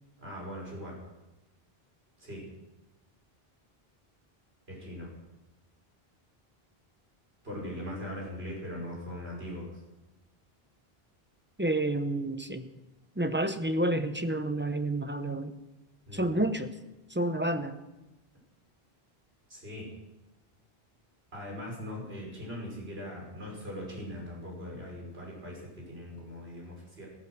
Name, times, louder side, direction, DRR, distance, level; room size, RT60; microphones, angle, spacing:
voice 1, 0.2-1.0 2.2-2.5 4.7-5.1 7.4-9.8 16.1-16.3 19.5-19.9 21.3-27.1, equal, 80° right, -2 dB, 6.3 m, -40 dB
voice 2, 11.6-12.7 13.2-15.5 16.1-16.7 17.1-17.8, right 1 dB, 10° right, 9 dB, 0.8 m, -29 dB
15.5 x 14.0 x 6.3 m, 1.0 s
omnidirectional pair, 1.0 m